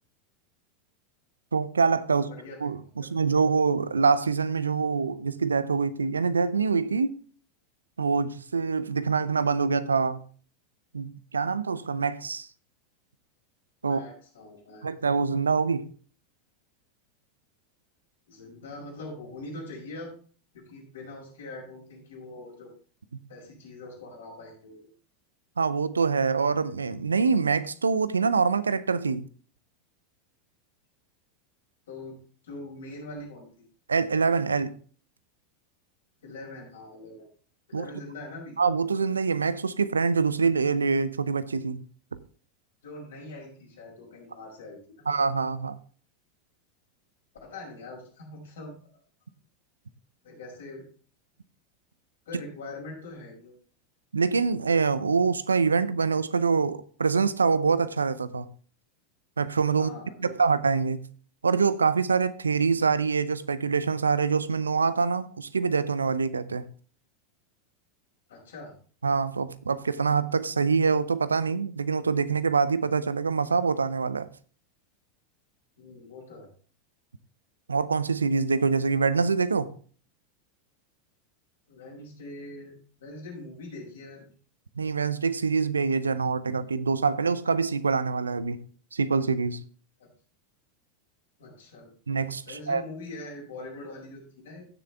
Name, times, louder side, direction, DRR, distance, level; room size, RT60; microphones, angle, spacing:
voice 1, 1.5-2.3 2.6-7.2 8.0-10.2 10.9-12.5 13.8-14.0 14.8-15.9 25.6-29.2 33.9-34.7 37.7-37.9 38.6-41.8 45.1-45.8 54.1-58.5 59.4-59.9 60.2-61.0 61.4-66.6 69.0-74.3 77.7-79.7 84.8-88.6 88.9-89.6 92.1-92.8, right 5 dB, 85° right, 0.6 m, -25 dB
voice 2, 2.1-2.9 13.8-14.9 18.3-20.1 20.5-22.7 23.3-24.8 31.9-32.2 32.4-33.7 36.2-37.3 37.7-38.6 42.8-45.1 47.4-48.7 50.2-50.8 52.3-53.6 59.8-60.5 68.3-68.7 75.8-76.5 81.7-82.7 83.0-84.3 91.4-91.9 92.4-94.7, left 2 dB, 75° left, 5.6 m, -42 dB
15.5 x 6.9 x 3.5 m
figure-of-eight pair, 85°, 0 cm